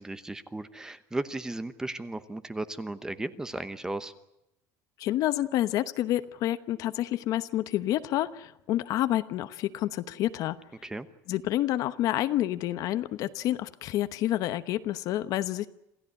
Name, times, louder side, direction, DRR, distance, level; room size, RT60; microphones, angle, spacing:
voice 1, 0.0-4.1 10.8-11.1, right 2 dB, 10° right, 12 dB, 1.0 m, -35 dB
voice 2, 5.0-10.6 11.3-15.7, left 14 dB, 55° left, 12 dB, 1.0 m, -28 dB
27.5 x 15.5 x 9.8 m, 0.84 s
cardioid pair, 165°, 7 cm